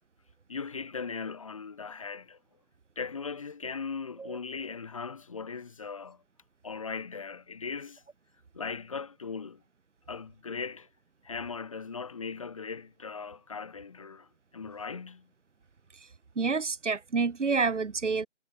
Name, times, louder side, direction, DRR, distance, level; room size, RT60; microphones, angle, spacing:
voice 1, 0.5-2.4 3.0-6.2 6.6-8.0 8.5-9.6 10.1-10.9 11.2-15.3, left 5 dB, 25° left, 2.1 m, -38 dB
voice 2, 16.4-18.3, right 4 dB, 75° right, 1.1 m, -28 dB
figure-of-eight pair, 165°, 37 cm